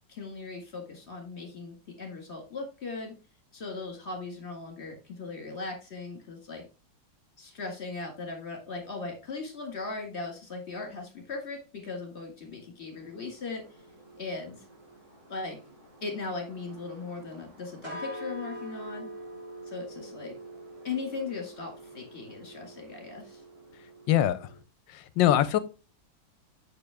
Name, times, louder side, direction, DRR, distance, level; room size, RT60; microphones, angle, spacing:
voice 1, 0.1-3.2 3.5-6.6 7.4-13.6 14.2-14.6 15.3-15.6 16.0-19.1 19.7-20.3 20.8-23.4, left 3 dB, 35° left, 2 dB, 2.3 m, -38 dB
sound 1, 13.0-24.6, right 1 dB, 50° right, 3.3 m, -46 dB
voice 2, 24.1-24.5 24.9-25.6, left 12 dB, 75° left, 15 dB, 1.3 m, -23 dB
6.8 x 6.4 x 3.5 m, 0.32 s
omnidirectional pair, 2.1 m